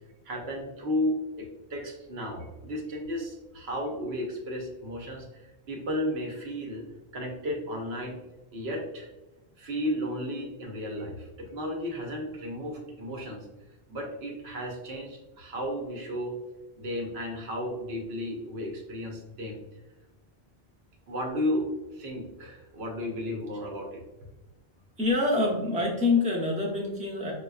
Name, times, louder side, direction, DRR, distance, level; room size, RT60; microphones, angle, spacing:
voice 1, 0.2-5.3 5.7-6.9 7.1-8.2 8.5-9.1 9.6-13.5 13.9-16.3 16.8-19.6 21.1-24.0, left 1 dB, 80° right, 1 dB, 1.0 m, -33 dB
voice 2, 25.0-27.3, left 3 dB, 10° right, -2 dB, 0.5 m, -26 dB
5.0 x 2.3 x 2.3 m, 1.1 s
omnidirectional pair, 1.1 m